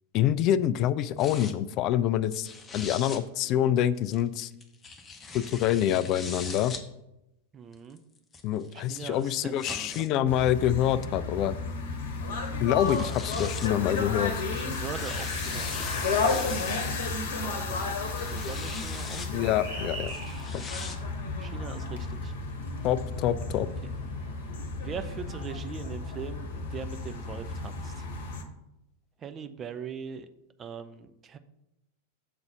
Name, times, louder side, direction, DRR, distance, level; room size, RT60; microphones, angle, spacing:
voice 1, 0.1-2.5 2.7-4.5 5.3-6.7 8.4-11.6 12.6-14.3 19.3-20.1 20.5-20.7 22.8-23.7, left 11 dB, 40° left, 16 dB, 0.3 m, -26 dB
sound 1, 1.2-1.5 2.3-3.2 4.1-6.8 7.7-10.1 10.9-11.0 12.5-12.6 12.8-13.8 14.5-17.1 17.9-19.3 20.1-21.0, left 4 dB, 20° left, 0.8 m, -41 dB
voice 2, 7.5-8.0 8.7-10.1 14.5-15.9 17.3-19.5 21.4-22.3 23.3-23.4 24.8-28.0 29.2-30.3 30.6-31.4, right 7 dB, 25° right, 10 dB, 0.4 m, -41 dB
sound 2, 10.3-28.4, left 3 dB, 55° left, 1.0 m, -33 dB
sound 3, 16.3-24.6, right 3 dB, 60° right, 2.2 m, -46 dB
6.7 x 3.9 x 5.7 m, 0.90 s
figure-of-eight pair, 90°, 0 cm